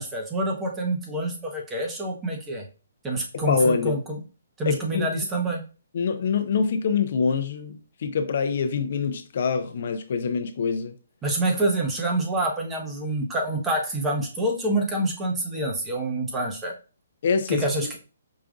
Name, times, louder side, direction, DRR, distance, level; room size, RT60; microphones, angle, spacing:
voice 1, 0.0-2.6 3.0-4.2 4.6-5.6 11.2-16.7 17.5-18.0, right 1 dB, 10° right, 0.8 m, -27 dB
voice 2, 3.3-4.0 4.7-5.1 5.9-10.9 17.2-17.6, left 5 dB, 55° left, 0.4 m, -25 dB
4.9 x 2.5 x 2.4 m
hypercardioid pair, 155°, 0 cm